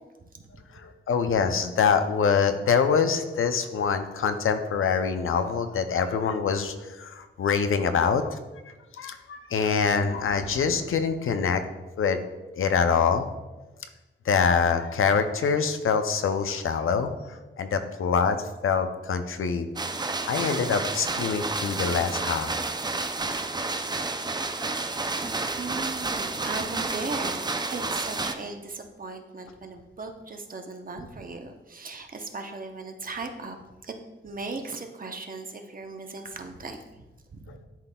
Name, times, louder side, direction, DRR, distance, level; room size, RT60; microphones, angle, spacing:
voice 1, 0.7-8.4 8.7-11.6 12.0-12.2 12.6-13.3 14.2-18.4 18.6-19.7 20.3-22.5 23.6-23.7 37.5-37.6, left 6 dB, 80° left, 8 dB, 0.5 m, -25 dB
sound 1, 19.8-28.3, right 3 dB, 20° right, 0.4 m, -30 dB
voice 2, 25.2-27.4 27.7-33.6 33.8-33.9 34.2-36.8 37.3-37.6, right 3 dB, 45° right, 5 dB, 0.7 m, -37 dB
11.0 x 4.1 x 2.2 m, 1.1 s
wide cardioid pair, 95°, 21 cm